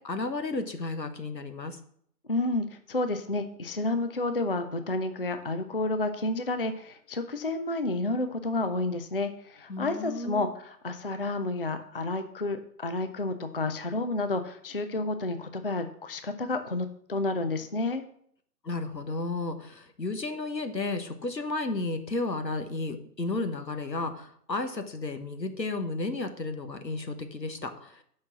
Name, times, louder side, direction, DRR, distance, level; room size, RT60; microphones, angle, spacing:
voice 1, 0.0-1.8 9.7-10.5 18.6-28.0, left 3 dB, 85° left, 8 dB, 1.3 m, -33 dB
voice 2, 2.3-18.0, left 2 dB, 40° left, 9 dB, 0.4 m, -30 dB
6.3 x 5.6 x 5.9 m, 0.65 s
figure-of-eight pair, 135°, 49 cm